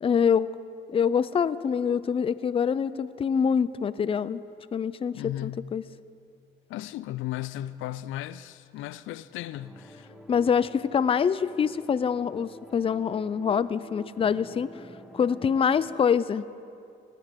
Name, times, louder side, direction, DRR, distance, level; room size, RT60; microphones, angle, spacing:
voice 1, 0.0-0.5 0.9-4.4 4.7-5.8 10.3-14.7 15.1-16.5, left 7 dB, 30° left, 0.4 m, -25 dB
voice 2, 5.1-5.7 6.7-10.1, left 14 dB, 90° left, 0.4 m, -36 dB
sound 1, 9.5-16.0, equal, ahead, 1.0 m, -48 dB
20.0 x 9.4 x 5.1 m
cardioid pair, 90°, 20 cm